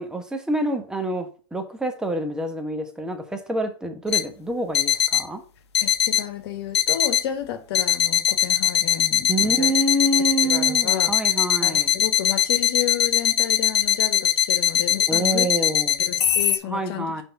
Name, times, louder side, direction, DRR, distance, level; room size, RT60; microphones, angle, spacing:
voice 1, 0.0-5.4 9.3-11.9 15.1-16.1 16.6-17.2, right 1 dB, 5° right, 1.1 m, -27 dB
sound 1, 4.1-4.2 4.7-5.2 5.7-6.2 6.7-7.2 7.7-16.6, left 10 dB, 80° left, 0.8 m, -20 dB
voice 2, 5.8-9.7 10.4-11.1 11.6-15.5 16.0-17.2, left 10 dB, 60° left, 1.3 m, -32 dB
5.5 x 3.7 x 5.7 m
hypercardioid pair, 110°, 14 cm